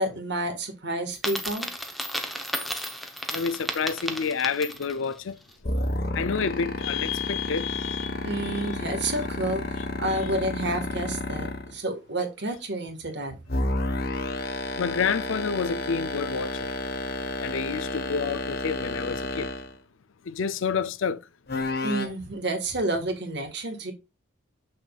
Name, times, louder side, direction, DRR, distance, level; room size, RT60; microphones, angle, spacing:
voice 1, 0.0-1.7 8.2-13.3 21.8-23.9, right 1 dB, 60° right, 1.6 m, -30 dB
Coin (dropping), 1.1-5.0, equal, ahead, 0.7 m, -33 dB
voice 2, 3.3-5.4 6.1-8.2 8.4-8.8 14.8-16.7 17.4-19.5 20.3-21.2, left 6 dB, 70° left, 0.5 m, -29 dB
sound 1, 5.6-11.7 13.5-19.8 21.5-22.1, left 2 dB, 50° left, 1.2 m, -30 dB
7.0 x 6.3 x 2.4 m
head